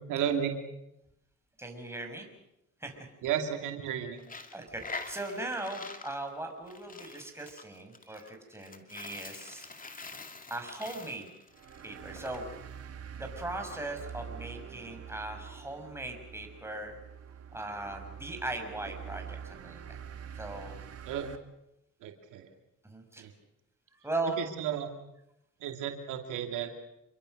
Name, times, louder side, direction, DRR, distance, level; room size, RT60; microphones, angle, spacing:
voice 1, 0.1-0.5 3.2-4.2 21.1-21.3 22.0-22.5 23.2-23.3 24.4-24.9 25.6-26.8, right 9 dB, 90° right, 4 dB, 2.6 m, -33 dB
voice 2, 1.6-2.3 2.8-3.1 4.5-9.7 10.5-11.3 11.8-12.5 13.1-16.9 17.5-20.0 20.4-20.8 22.8-23.3 24.0-24.4, right 2 dB, 10° right, 4 dB, 6.0 m, -39 dB
Coin (dropping), 4.2-12.4, left 3 dB, 25° left, 2.4 m, -45 dB
sound 1, 11.5-21.4, right 8 dB, 55° right, 2.1 m, -45 dB
27.5 x 22.5 x 6.6 m, 0.85 s
cardioid pair, 90°, 30 cm